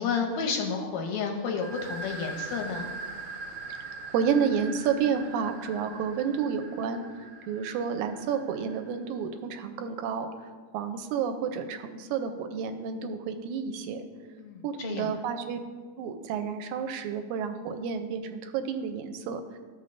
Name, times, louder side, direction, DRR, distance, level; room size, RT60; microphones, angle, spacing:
voice 1, 0.0-2.9 14.4-15.2, left 5 dB, 80° left, 2 dB, 1.7 m, -31 dB
sound 1, 1.6-9.1, right 3 dB, 60° right, 1.8 m, -41 dB
voice 2, 3.8-7.0 7.5-10.3 10.7-14.0 14.6-15.6 16.0-19.4, right 7 dB, 80° right, 7 dB, 1.9 m, -30 dB
13.5 x 5.6 x 2.5 m, 1.5 s
omnidirectional pair, 3.5 m